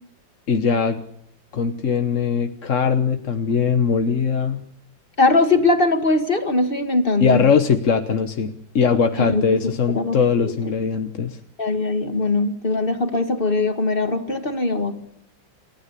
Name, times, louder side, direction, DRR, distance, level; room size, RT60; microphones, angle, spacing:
voice 1, 0.5-1.0 1.5-4.6 7.2-11.4, left 6 dB, 50° left, 7 dB, 1.4 m, -20 dB
voice 2, 5.2-7.4 9.2-9.4 9.9-10.5 11.6-14.9, left 3 dB, 30° left, 7 dB, 2.2 m, -21 dB
29.0 x 15.0 x 8.4 m, 0.70 s
omnidirectional pair, 1.9 m